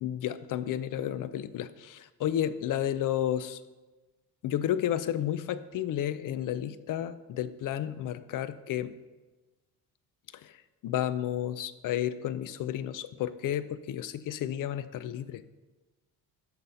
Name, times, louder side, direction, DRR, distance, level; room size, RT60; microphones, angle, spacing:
voice 1, 0.0-3.6 4.4-8.9 10.4-10.5 10.8-15.4, left 11 dB, 55° left, 14 dB, 0.5 m, -32 dB
12.0 x 4.1 x 5.6 m, 1.2 s
cardioid pair, 130°, 38 cm